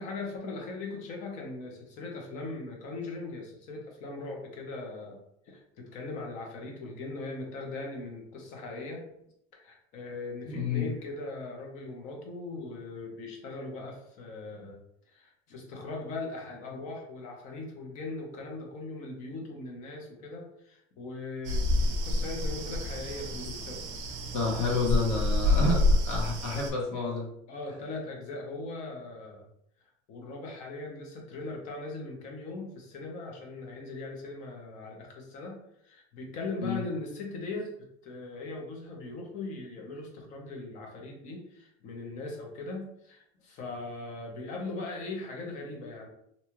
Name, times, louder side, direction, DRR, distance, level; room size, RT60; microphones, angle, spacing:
voice 1, 0.0-9.1 9.5-14.8 15.1-23.8 24.1-24.2 25.0-25.3 25.5-25.9 27.5-29.4 30.1-46.1, left 2 dB, 45° left, 1 dB, 0.7 m, -40 dB
voice 2, 10.5-10.9 24.3-25.8 26.1-27.3 36.6-36.8, left 3 dB, 75° left, -1 dB, 1.0 m, -29 dB
sound 1, 21.4-26.7, left 2 dB, 45° right, 0.5 m, -28 dB
2.7 x 2.3 x 2.9 m, 0.75 s
cardioid pair, 155°, 17 cm